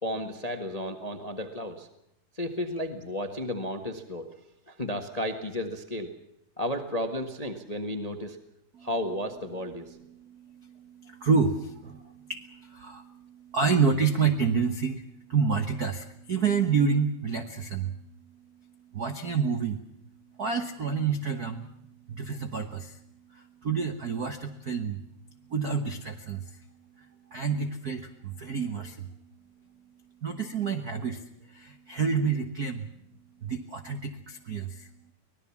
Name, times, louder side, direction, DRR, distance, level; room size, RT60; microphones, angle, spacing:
voice 1, 0.0-1.9 2.3-4.3 4.7-6.1 6.6-8.4 8.8-9.9, left 1 dB, 35° left, 7 dB, 0.6 m, -33 dB
voice 2, 10.2-17.9 18.9-19.8 20.4-21.7 22.1-23.0 23.3-25.0 25.5-26.6 27.0-27.1 27.3-29.1 30.2-31.2 31.5-32.9 33.4-34.9, right 5 dB, 90° right, 7 dB, 0.8 m, -29 dB
24.5 x 19.0 x 7.2 m, 0.77 s
omnidirectional pair, 3.7 m